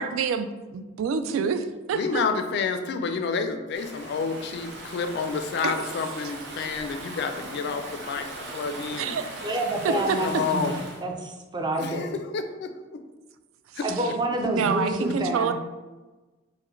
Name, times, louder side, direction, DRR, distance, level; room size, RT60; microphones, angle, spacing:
voice 1, 0.0-2.2 5.6-5.7 6.6-6.7 9.0-9.2 9.8-10.2 14.0-14.1 14.4-15.5, right 6 dB, 90° right, 10 dB, 0.3 m, -27 dB
voice 2, 1.9-9.2 9.9-10.8 11.8-13.0 13.8-13.9, left 5 dB, 60° left, 7 dB, 0.3 m, -29 dB
Stream / Ocean, 3.7-11.0, right 2 dB, 60° right, 0.7 m, -39 dB
voice 3, 9.4-12.2 13.8-15.5, right 1 dB, 20° right, 2 dB, 0.4 m, -28 dB
4.7 x 2.1 x 3.1 m, 1.2 s
head